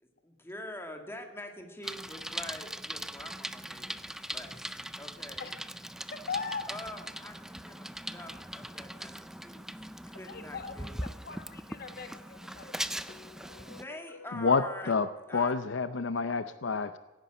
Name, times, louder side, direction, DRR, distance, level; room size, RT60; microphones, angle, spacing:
voice 1, 0.0-5.6 6.7-9.7 10.1-10.9 13.6-15.0 15.3-15.6, left 1 dB, 15° left, 1.8 m, -45 dB
Bicycle, 1.8-13.8, right 1 dB, 5° right, 0.4 m, -40 dB
voice 2, 6.3-6.6 10.3-12.9, left 5 dB, 55° left, 1.2 m, -39 dB
voice 3, 13.1-13.8 14.3-15.1 15.3-17.0, left 4 dB, 70° left, 0.6 m, -29 dB
16.0 x 9.7 x 7.7 m
head